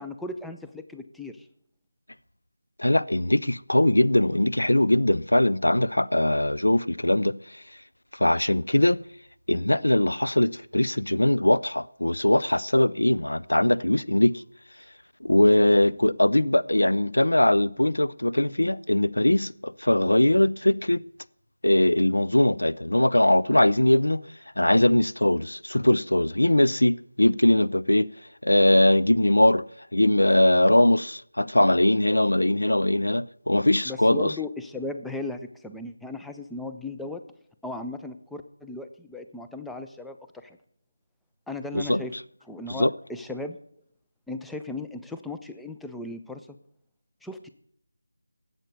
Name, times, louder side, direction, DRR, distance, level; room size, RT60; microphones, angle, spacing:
voice 1, 0.0-1.5 33.9-37.2 37.6-40.6 41.5-42.1 42.4-43.6 44.3-46.6 47.2-47.5, left 2 dB, ahead, 0.4 m, -36 dB
voice 2, 2.8-7.6 8.1-9.0 9.5-14.4 15.2-21.0 21.6-24.2 24.6-28.1 28.4-29.6 29.9-34.3 41.7-42.0 42.7-42.9, left 1 dB, 70° left, 0.5 m, -21 dB
11.5 x 8.1 x 6.5 m
figure-of-eight pair, 165°, 0 cm